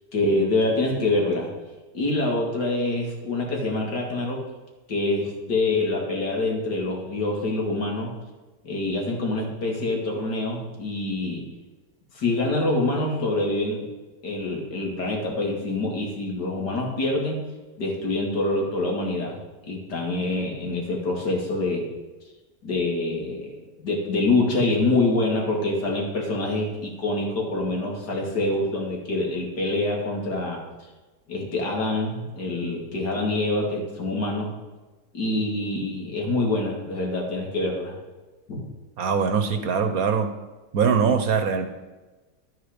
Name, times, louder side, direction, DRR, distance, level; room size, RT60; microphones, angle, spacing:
voice 1, 0.1-1.5 1.9-4.4 4.9-8.1 8.6-11.4 12.1-13.9 14.2-17.4 17.8-19.4 19.7-21.9 22.6-30.6 31.3-34.5 35.1-37.9 38.5-38.6, left 2 dB, 75° left, -1 dB, 3.0 m, -25 dB
voice 2, 39.0-40.3 40.7-41.7, right 6 dB, 60° right, 8 dB, 1.3 m, -22 dB
11.5 x 9.2 x 5.2 m, 1.2 s
omnidirectional pair, 1.8 m